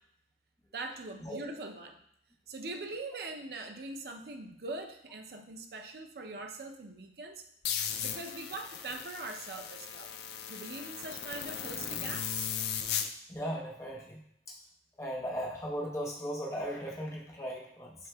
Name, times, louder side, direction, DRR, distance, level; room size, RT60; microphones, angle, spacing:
voice 1, 0.7-2.0 2.5-7.4 7.8-10.1 10.5-12.5, right 2 dB, 60° right, 4 dB, 0.5 m, -42 dB
sound 1, 7.6-13.1, left 8 dB, 65° left, 0.3 m, -37 dB
voice 2, 13.3-14.5 15.0-18.0, equal, 15° left, -4 dB, 0.7 m, -37 dB
7.4 x 2.8 x 2.2 m, 0.73 s
head